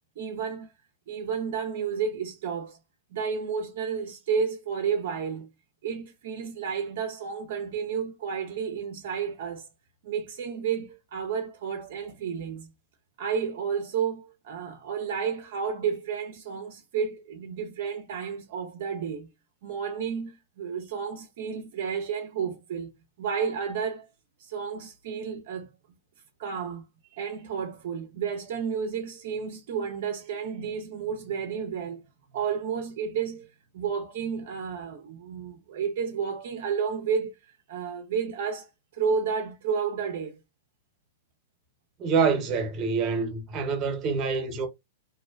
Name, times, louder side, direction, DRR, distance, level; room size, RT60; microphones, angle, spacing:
voice 1, 0.2-0.7 1.1-2.8 3.1-5.5 5.8-9.7 10.0-12.7 13.2-19.3 19.6-22.9 23.2-24.1 24.4-25.7 26.4-26.8 27.1-32.0 32.3-40.4, right 6 dB, 60° right, 0.4 m, -31 dB
voice 2, 42.0-44.7, right 5 dB, 35° right, 0.8 m, -26 dB
2.5 x 2.1 x 2.3 m
hypercardioid pair, 110°, 0 cm